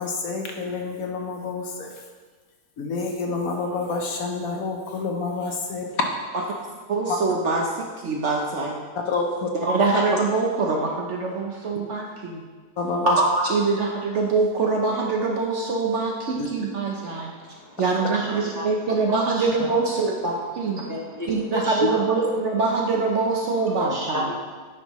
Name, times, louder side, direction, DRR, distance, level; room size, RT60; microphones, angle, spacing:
voice 1, 0.0-1.9 2.8-6.0 7.1-7.2 9.1-9.5 12.8-13.1 16.4-16.5, left 4 dB, 65° left, 2 dB, 1.1 m, -28 dB
voice 2, 6.9-8.7 9.5-12.4 13.0-17.3 17.8-20.9 21.3-24.3, right 3 dB, 55° right, 0 dB, 0.9 m, -24 dB
voice 3, 17.1-18.6 19.0-19.7 20.8-22.2 23.7-24.4, equal, 20° left, -3 dB, 0.5 m, -33 dB
9.2 x 5.5 x 3.0 m, 1.4 s
omnidirectional pair, 1.8 m